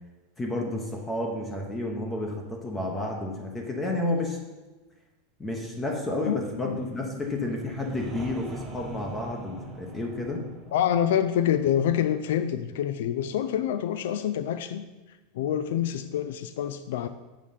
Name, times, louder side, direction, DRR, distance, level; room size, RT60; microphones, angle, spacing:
voice 1, 0.4-4.4 5.4-10.5, left 2 dB, 10° left, 2 dB, 0.9 m, -31 dB
voice 2, 6.3-6.8 10.7-14.9 15.3-17.1, left 10 dB, 75° left, 11 dB, 0.4 m, -27 dB
sound 1, 7.1-12.9, right 2 dB, 10° right, 1.0 m, -43 dB
7.3 x 4.9 x 5.6 m, 1.2 s
supercardioid pair, 160°, 0 cm